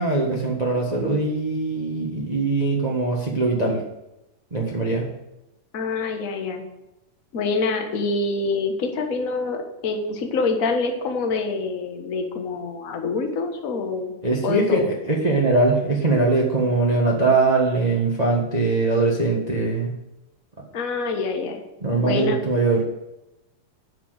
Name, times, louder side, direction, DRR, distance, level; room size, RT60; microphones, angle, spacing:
voice 1, 0.0-3.8 4.5-5.1 14.2-19.9 21.8-22.8, right 3 dB, 40° right, -2 dB, 0.5 m, -21 dB
voice 2, 5.7-6.6 7.3-14.1 14.4-14.9 20.7-21.6 22.0-22.4, left 3 dB, 50° left, 4 dB, 0.9 m, -26 dB
10.0 x 6.1 x 8.0 m, 0.92 s
omnidirectional pair, 3.7 m